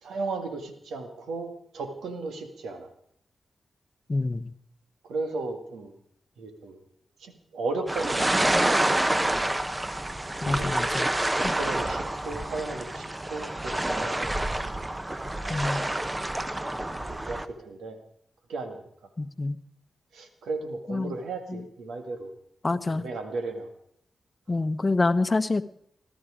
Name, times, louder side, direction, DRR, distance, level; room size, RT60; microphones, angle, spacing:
voice 1, 0.0-2.9 5.0-5.9 6.4-6.8 7.2-9.3 10.4-10.9 11.3-14.2 15.4-15.8 17.1-18.0 18.5-18.8 20.1-22.3 22.9-23.7, right 3 dB, 90° right, 6 dB, 1.8 m, -35 dB
voice 2, 4.1-4.5 10.4-11.1 11.4-11.5 15.5-15.8 19.2-19.6 20.9-21.1 21.5-21.6 22.6-23.0 24.5-25.6, left 3 dB, 35° left, 13 dB, 0.8 m, -26 dB
sound 1, 7.9-17.5, right 1 dB, 20° right, 1.0 m, -28 dB
21.0 x 12.5 x 4.9 m, 0.70 s
cardioid pair, 50°, 0 cm